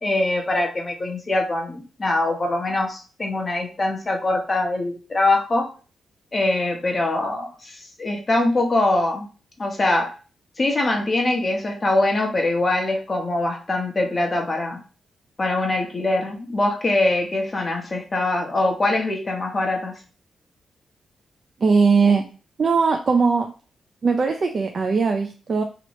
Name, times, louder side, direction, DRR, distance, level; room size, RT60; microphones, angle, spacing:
voice 1, 0.0-5.7 6.3-9.3 9.6-10.1 10.6-14.8 15.4-20.0, left 2 dB, 35° left, 2 dB, 1.0 m, -23 dB
voice 2, 21.6-22.3 22.6-23.5 24.0-25.6, right 4 dB, 50° right, 5 dB, 0.4 m, -19 dB
2.9 x 2.8 x 3.0 m, 0.36 s
cardioid pair, 70°, 0 cm